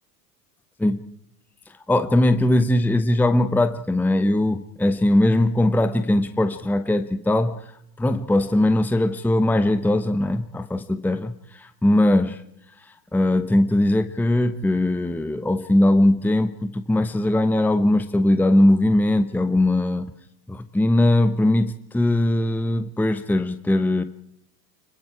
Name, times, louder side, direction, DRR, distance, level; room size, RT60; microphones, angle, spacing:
voice 1, 1.9-7.6 8.0-12.4 13.1-20.1 20.5-24.0, left 1 dB, 5° left, 10 dB, 1.0 m, -20 dB
25.5 x 22.5 x 4.9 m, 0.77 s
hypercardioid pair, 85°, 49 cm